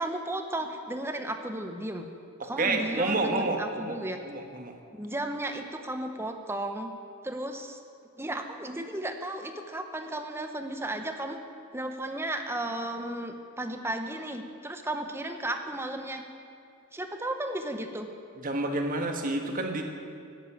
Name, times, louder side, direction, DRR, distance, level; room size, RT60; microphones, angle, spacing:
voice 1, 0.0-2.1 2.4-4.2 4.9-6.9 7.2-7.8 8.2-11.4 11.7-16.2 16.9-18.1, right 1 dB, 10° right, 6 dB, 0.9 m, -34 dB
voice 2, 2.4-4.8 18.4-19.8, right 2 dB, 40° right, 4 dB, 1.4 m, -29 dB
11.0 x 10.5 x 8.4 m, 2.4 s
head